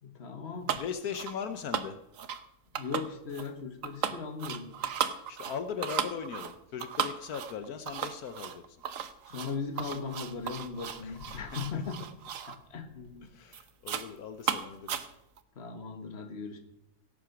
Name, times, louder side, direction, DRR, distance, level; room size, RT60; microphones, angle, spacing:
voice 1, 0.0-0.7 2.7-4.7 9.3-12.1 12.7-13.3 15.6-16.6, left 5 dB, 45° left, 6 dB, 1.8 m, -38 dB
sound 1, 0.7-1.4 1.7-2.4 2.7-3.5 3.8-12.6 13.0-13.2 13.5-14.1 14.4-15.4, right 8 dB, 65° right, 1.2 m, -35 dB
voice 2, 0.8-2.0 5.3-8.8 11.0-11.4 11.7-11.8 13.2-15.0, left 7 dB, 80° left, 9 dB, 1.4 m, -39 dB
17.0 x 7.9 x 6.0 m, 0.83 s
omnidirectional pair, 1.6 m